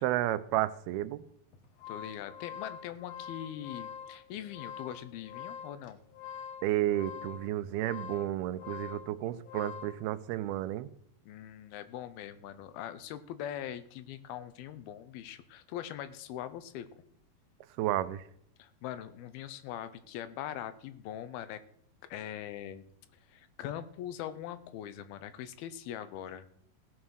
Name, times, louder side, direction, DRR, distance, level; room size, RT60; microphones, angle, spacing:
voice 1, 0.0-1.2 6.6-10.9 17.8-18.2, right 14 dB, 85° right, 14 dB, 2.6 m, -32 dB
sound 1, 1.5-10.0, left 8 dB, 55° left, 2.0 m, -45 dB
voice 2, 1.9-6.0 11.2-16.9 18.6-21.6 22.1-22.9 23.3-26.5, left 11 dB, 85° left, 13 dB, 2.7 m, -42 dB
17.0 x 7.2 x 6.3 m, 0.70 s
omnidirectional pair, 4.4 m